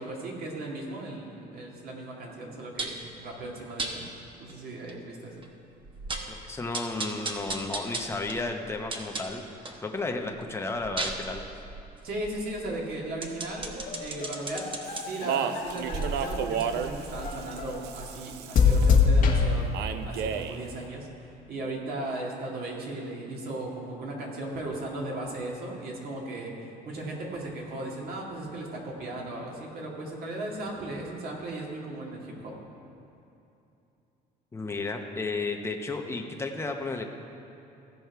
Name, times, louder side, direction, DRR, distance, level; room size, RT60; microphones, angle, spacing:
voice 1, 0.0-4.0 4.4-5.4 12.0-13.7 14.0-19.7 20.0-32.5, right 2 dB, 60° right, -2 dB, 2.1 m, -37 dB
sound 1, 2.8-3.1 3.8-3.9 4.5-4.6 4.9-5.0 5.4-5.5 5.8-6.4 6.7-9.8 10.2-15.0 15.6-18.3 18.7-18.8, right 3 dB, 30° right, 1.0 m, -36 dB
voice 2, 6.3-9.4 9.8-11.4 34.5-37.0, left 3 dB, 15° left, 3 dB, 0.9 m, -33 dB
sound 2, 13.6-16.7 17.2-17.8 18.5-19.5, left 5 dB, 55° left, 1.3 m, -24 dB
Speech, 14.8-19.0 19.7-20.6, right 7 dB, 80° right, 0.5 m, -33 dB
16.0 x 5.3 x 4.6 m, 2.8 s
cardioid pair, 110°, 17 cm